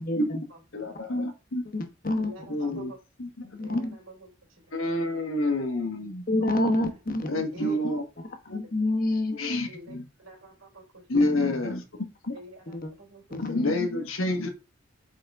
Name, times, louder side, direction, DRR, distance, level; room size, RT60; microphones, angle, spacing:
voice 1, 0.0-0.4 1.7-2.3 3.5-3.9 6.3-7.6 8.5-9.6 11.1-11.6 12.7-12.9 13.3-13.7, left 1 dB, 45° left, 6 dB, 1.0 m, -28 dB
voice 2, 0.7-1.6 2.5-2.9 3.2-3.3 3.7-3.9 4.7-6.2 7.3-8.0 8.5-8.6 9.4-10.0 11.1-12.3 13.4-14.5, left 2 dB, 85° left, 5 dB, 1.3 m, -28 dB
voice 3, 2.2-3.0 3.6-4.8 6.6-7.0 7.5-7.8 9.7-11.0 12.3-13.4, right 2 dB, 90° right, -1 dB, 3.5 m, -47 dB
8.2 x 3.9 x 3.5 m, 0.30 s
head